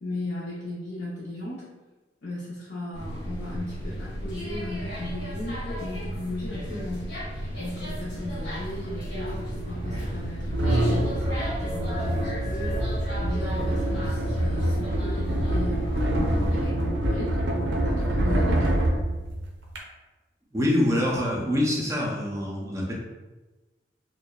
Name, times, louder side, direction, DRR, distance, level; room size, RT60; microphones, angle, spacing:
voice 1, 0.0-1.7 2.2-7.1 7.6-12.8 13.2-18.8 20.9-21.0, left 1 dB, 65° left, -10 dB, 0.6 m, -36 dB
sound 1, 2.9-16.7, equal, 80° left, 1.0 m, -35 dB
sound 2, 9.2-19.8, right 1 dB, 80° right, 0.5 m, -26 dB
sound 3, 10.8-15.3, right 2 dB, 10° left, 0.8 m, -39 dB
voice 2, 20.5-22.9, left 1 dB, 15° right, -4 dB, 0.5 m, -25 dB
2.6 x 2.0 x 2.3 m, 1.2 s
head